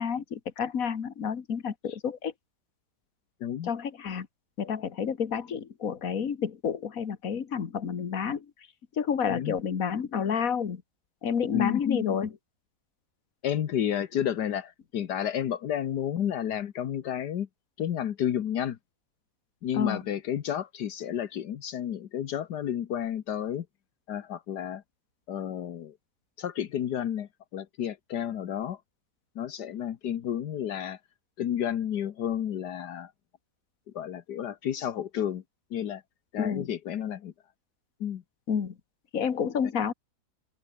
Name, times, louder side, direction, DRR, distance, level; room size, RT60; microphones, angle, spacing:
voice 1, 0.0-2.3 3.6-4.3 4.6-8.5 9.0-10.8 11.2-12.3 19.8-20.0 36.4-36.7 38.5-38.7 39.1-39.9, left 7 dB, 55° left, 2.0 m, -29 dB
voice 2, 11.5-12.2 13.4-17.5 17.8-18.8 19.6-23.6 24.1-24.8 25.3-25.9 26.4-28.8 29.3-31.0 31.4-33.1 33.9-35.4 35.7-36.0 36.3-37.3 38.0-38.2, left 10 dB, 80° left, 1.7 m, -31 dB
open air
omnidirectional pair, 1.7 m